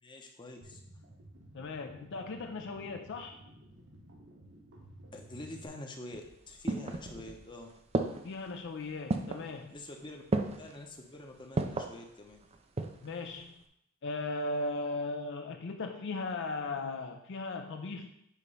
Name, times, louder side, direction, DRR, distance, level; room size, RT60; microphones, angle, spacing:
voice 1, 0.0-0.8 5.1-6.2 6.5-7.7 9.7-10.2 10.6-12.4, left 1 dB, 20° left, 2 dB, 0.8 m, -46 dB
sound 1, 0.6-5.7, right 1 dB, 55° right, 1.1 m, -54 dB
voice 2, 1.5-3.4 8.2-9.8 13.0-13.5 14.0-18.1, left 3 dB, 55° left, 4 dB, 0.4 m, -37 dB
sound 2, 6.1-7.5 7.9-8.5 9.1-9.5 10.3-10.8 11.6-12.0 12.5-13.1 13.4-13.5, right 2 dB, 30° right, 0.4 m, -33 dB
8.5 x 3.0 x 5.3 m, 0.77 s
head